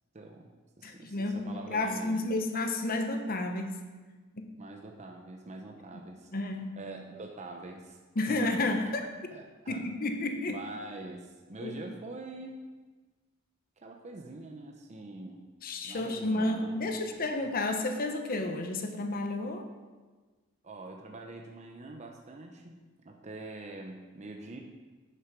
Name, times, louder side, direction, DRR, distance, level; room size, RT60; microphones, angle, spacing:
voice 1, 0.1-0.5 0.8-2.3 4.6-6.3 6.8-8.7 9.3-9.9 10.5-12.6 13.8-15.4 15.8-17.6 20.6-22.8 23.0-24.6, right 2 dB, 35° right, 2 dB, 0.8 m, -44 dB
voice 2, 0.8-3.8 4.3-4.5 6.3-6.8 8.2-9.1 9.7-10.6 11.6-11.7 15.6-19.7, left 2 dB, 45° left, 5 dB, 0.9 m, -31 dB
9.6 x 6.2 x 6.1 m, 1.3 s
head